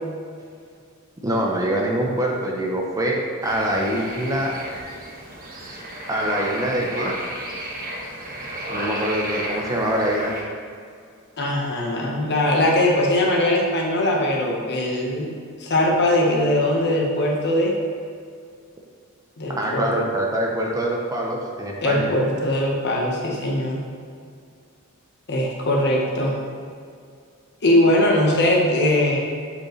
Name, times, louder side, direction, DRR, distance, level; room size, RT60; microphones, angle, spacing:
voice 1, 1.2-4.5 6.1-7.1 8.7-10.3 19.6-22.1, right 1 dB, 15° right, -1 dB, 0.7 m, -24 dB
sound 1, 3.4-10.4, right 1 dB, 40° right, 1.1 m, -32 dB
voice 2, 11.4-15.3 15.6-17.7 19.4-20.0 21.8-23.8 25.3-26.3 27.6-29.2, left 1 dB, 50° left, -1 dB, 1.2 m, -20 dB
7.1 x 5.2 x 3.2 m, 2.2 s
head